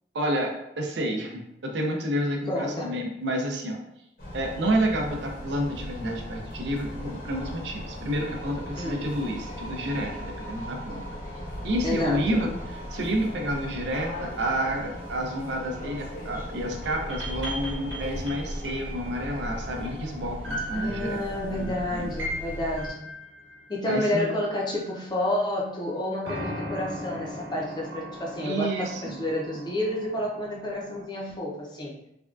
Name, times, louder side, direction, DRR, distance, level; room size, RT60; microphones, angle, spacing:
voice 1, 0.1-3.8 4.3-11.0 11.6-12.5 12.9-21.2 21.5-22.1 23.9-24.3 28.4-29.2, right 1 dB, 70° right, 2 dB, 0.5 m, -29 dB
voice 2, 2.5-3.0 8.7-9.0 11.8-12.4 20.7-23.1 23.7-31.9, left 1 dB, 25° left, -2 dB, 0.5 m, -30 dB
sound 1, 4.2-22.9, equal, 50° left, 0.8 m, -37 dB
sound 2, 13.7-25.3 26.2-31.1, equal, 90° right, 1.0 m, -40 dB
3.4 x 2.2 x 2.4 m, 0.82 s
head